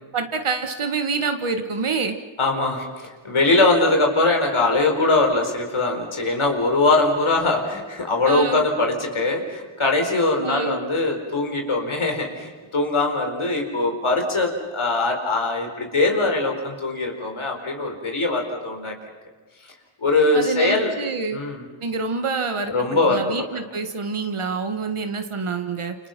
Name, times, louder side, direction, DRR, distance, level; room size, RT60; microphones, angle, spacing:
voice 1, 0.1-2.2 8.2-8.6 10.4-10.8 20.3-21.4 21.8-26.0, right 4 dB, 80° right, 6 dB, 1.8 m, -27 dB
voice 2, 2.4-18.9 20.0-20.9 21.3-21.6 22.7-23.4, left 2 dB, 75° left, 3 dB, 4.7 m, -22 dB
28.5 x 26.5 x 6.0 m, 1.4 s
wide cardioid pair, 65°, 49 cm